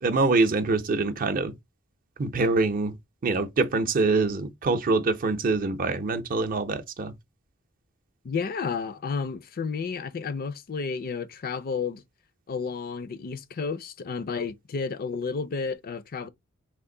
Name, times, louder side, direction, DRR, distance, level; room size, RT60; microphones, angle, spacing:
voice 1, 0.0-1.5 2.2-3.0 3.2-7.1, right 3 dB, 40° right, 0.6 m, -24 dB
voice 2, 8.2-12.0 12.5-16.3, left 5 dB, 45° left, 0.4 m, -31 dB
3.6 x 2.5 x 3.7 m
head